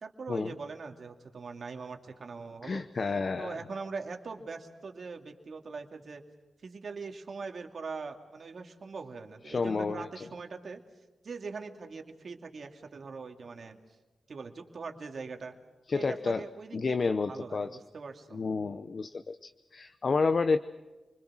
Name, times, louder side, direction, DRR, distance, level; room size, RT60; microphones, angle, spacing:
voice 1, 0.0-2.8 3.3-6.2 6.6-10.8 11.2-13.8 14.3-15.5 15.9-17.0 17.3-18.4, right 4 dB, 65° right, 4 dB, 2.5 m, -42 dB
voice 2, 2.6-3.6 9.5-10.1 15.9-16.4 16.7-17.7 18.3-20.6, left 4 dB, 55° left, 10 dB, 0.8 m, -30 dB
28.5 x 21.5 x 6.2 m, 1.2 s
cardioid pair, 55°, 0 cm